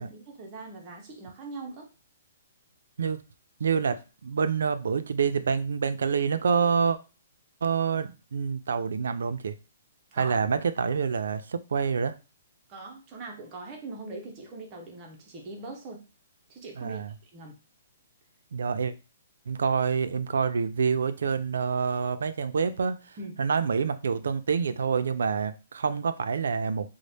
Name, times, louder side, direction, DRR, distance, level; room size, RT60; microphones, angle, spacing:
voice 1, 0.0-1.9 10.1-10.4 12.7-16.0 16.5-17.5 23.2-23.4, right 3 dB, 20° right, 0.5 m, -41 dB
voice 2, 3.6-7.0 7.6-9.6 10.1-12.1 16.8-17.1 18.5-18.9 19.5-26.9, right 6 dB, 80° right, 0.4 m, -27 dB
4.0 x 2.0 x 3.3 m
hypercardioid pair, 180°, 0 cm